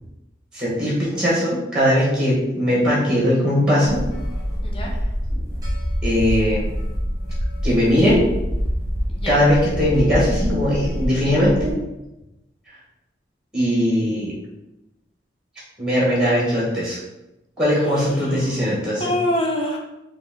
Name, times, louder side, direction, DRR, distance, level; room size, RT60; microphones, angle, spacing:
voice 1, 0.5-4.0 5.3-5.4 6.0-6.6 7.6-8.2 9.3-11.7 13.5-14.3 15.8-17.0 17.6-19.0, equal, 5° right, -6 dB, 1.2 m, -19 dB
sound 1, 3.8-11.7, equal, 20° right, 1.1 m, -26 dB
voice 2, 9.1-9.5 17.8-18.5 19.0-19.8, left 1 dB, 30° left, 0 dB, 0.6 m, -26 dB
4.1 x 2.4 x 3.5 m, 0.95 s
head